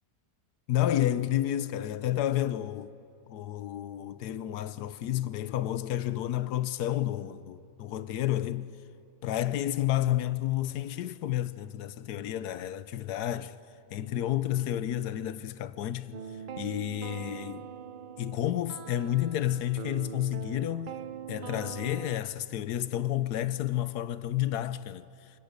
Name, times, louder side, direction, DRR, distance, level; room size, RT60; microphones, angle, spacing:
voice 1, 0.7-2.9 3.3-8.7 9.2-13.6 13.9-16.2 16.6-17.7 18.2-20.9 21.3-25.1, left 12 dB, 90° left, 1.3 m, -30 dB
sound 1, 16.1-22.2, right 8 dB, 80° right, 0.4 m, -42 dB
27.5 x 17.0 x 6.7 m
omnidirectional pair, 1.7 m